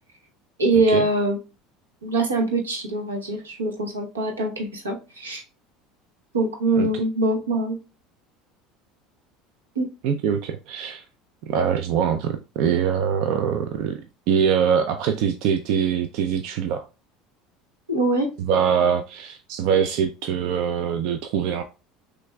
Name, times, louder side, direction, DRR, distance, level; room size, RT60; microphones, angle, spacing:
voice 1, 0.6-1.4 2.0-5.4 6.3-7.8 9.8-9.9 17.9-18.3, right 2 dB, 90° right, 0.8 m, -23 dB
voice 2, 10.0-11.0 11.5-14.0 14.3-16.8 18.4-21.6, right 7 dB, 60° right, 0.3 m, -23 dB
6.0 x 2.5 x 2.2 m
hypercardioid pair, 75°, 0 cm